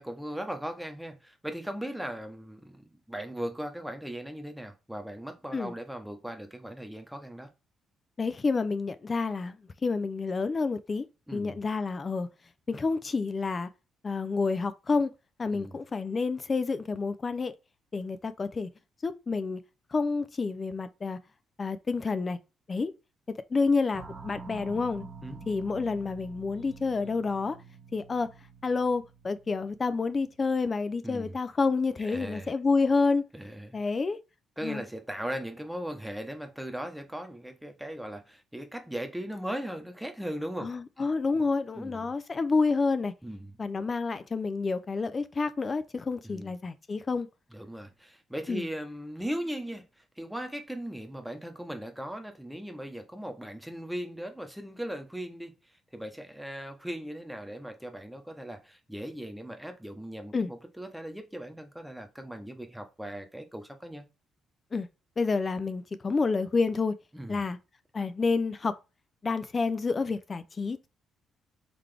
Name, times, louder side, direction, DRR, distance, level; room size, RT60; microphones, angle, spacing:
voice 1, 0.0-7.5 11.3-11.6 15.5-15.7 25.2-25.5 31.0-31.3 32.0-32.5 33.3-33.8 34.6-40.7 41.0-41.1 41.7-42.1 43.2-43.6 46.2-46.5 47.5-55.6 55.9-64.1 67.1-67.5, equal, 5° right, 0.9 m, -38 dB
voice 2, 8.2-9.6 9.8-11.1 11.3-12.3 12.7-13.7 14.0-15.1 15.4-17.5 17.9-18.7 19.0-19.6 19.9-21.2 21.6-22.4 22.7-22.9 23.5-25.1 25.5-27.6 27.9-28.3 28.6-33.2 33.7-34.2 34.6-34.8 40.6-43.1 43.6-47.3 48.5-48.7 60.3-60.5 64.7-64.9 65.2-67.0 67.3-67.6 67.9-68.8 69.2-70.9, left 4 dB, 35° left, 0.4 m, -29 dB
sound 1, 23.9-30.3, right 4 dB, 40° right, 0.9 m, -47 dB
3.9 x 3.3 x 3.3 m
cardioid pair, 90°, 0 cm